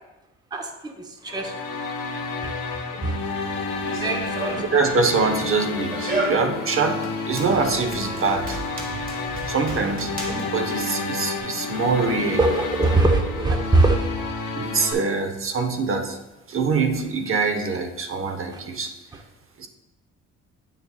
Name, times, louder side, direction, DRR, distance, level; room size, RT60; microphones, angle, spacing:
voice 1, 0.5-1.5 2.4-2.5 3.0-3.2 4.0-4.6 12.4-14.1 18.5-18.6, right 2 dB, 15° right, 4 dB, 0.6 m, -22 dB
sound 1, 1.3-14.9, left 3 dB, 85° left, 1.0 m, -30 dB
Run, 3.7-11.4, right 2 dB, 30° right, 1.3 m, -33 dB
voice 2, 4.6-8.6 9.5-12.4 14.5-16.2 16.5-18.9 19.6-19.7, right 4 dB, 45° right, 5 dB, 0.7 m, -24 dB
7.8 x 6.7 x 2.2 m, 1.0 s
cardioid pair, 90°, 30 cm